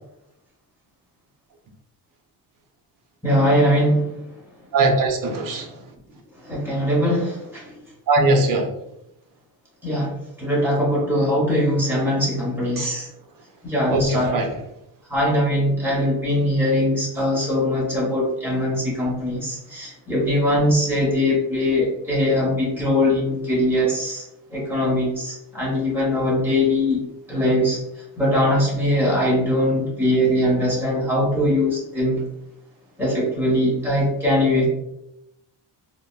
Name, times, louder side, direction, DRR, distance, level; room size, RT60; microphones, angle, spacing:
voice 1, 3.2-4.1 6.4-7.8 9.8-13.1 13.6-14.3 15.1-24.2 24.5-32.2 33.0-34.7, left 1 dB, 5° right, -5 dB, 1.0 m, -21 dB
voice 2, 4.7-5.7 8.1-8.7 12.8-12.9 13.9-14.5, right 2 dB, 55° right, 3 dB, 0.6 m, -20 dB
3.5 x 2.1 x 2.2 m, 0.85 s
cardioid pair, 150°, 41 cm